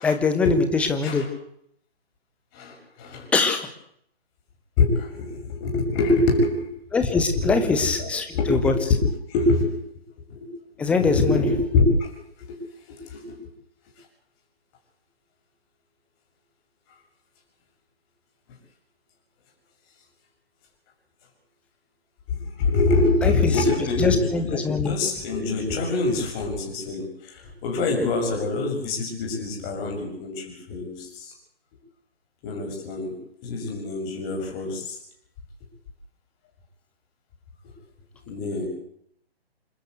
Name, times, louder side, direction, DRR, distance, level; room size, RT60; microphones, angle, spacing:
voice 1, 0.0-1.2 3.3-3.7 6.9-8.7 10.8-11.5 23.2-23.5 24.0-25.0, left 4 dB, 5° left, 7 dB, 1.2 m, -23 dB
voice 2, 4.8-6.7 7.4-9.8 10.3-10.5 11.0-12.1 12.5-12.6 13.1-13.4 22.6-27.1 27.6-31.3 32.4-33.1 33.4-34.9 38.3-38.7, left 3 dB, 20° left, 1 dB, 6.6 m, -24 dB
27.5 x 13.0 x 8.1 m, 0.70 s
figure-of-eight pair, 140°, 32 cm